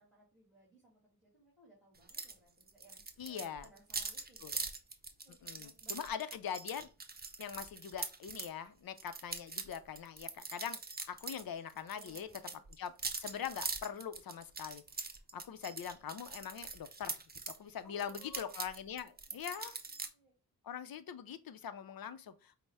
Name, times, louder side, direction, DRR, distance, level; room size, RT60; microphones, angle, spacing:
voice 1, 0.0-4.7 5.2-6.1 11.9-12.6 17.8-18.6 20.1-20.3, equal, ahead, 2.0 m, -61 dB
sound 1, 2.1-2.3 2.6-8.5 9.0-11.4 11.7-17.6 18.0-20.1, right 4 dB, 25° right, 0.7 m, -42 dB
voice 2, 3.2-3.7 4.4-4.6 5.3-6.9 7.4-10.8 11.1-12.3 12.8-12.9 13.2-14.8 15.3-17.2 17.6-19.8 20.6-22.5, left 8 dB, 70° left, 0.6 m, -42 dB
5.3 x 2.1 x 3.4 m
cardioid pair, 60°, 37 cm